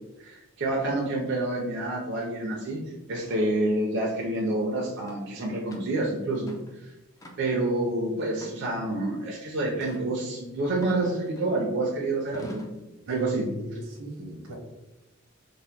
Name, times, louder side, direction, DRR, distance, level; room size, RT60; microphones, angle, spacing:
voice 1, 0.2-2.8 3.1-6.6 6.8-6.9 7.4-12.7 13.1-13.5, right 2 dB, 55° right, -1 dB, 0.5 m, -28 dB
sound 1, 5.1-5.2 5.7-5.9 6.3-6.8 7.2-7.7 8.3-9.0 9.8-10.1 10.8-11.7 12.3-12.8, left 1 dB, 15° left, 0.3 m, -45 dB
voice 2, 13.1-14.5, equal, 85° right, 1 dB, 0.8 m, -38 dB
2.8 x 2.1 x 3.4 m, 0.99 s
head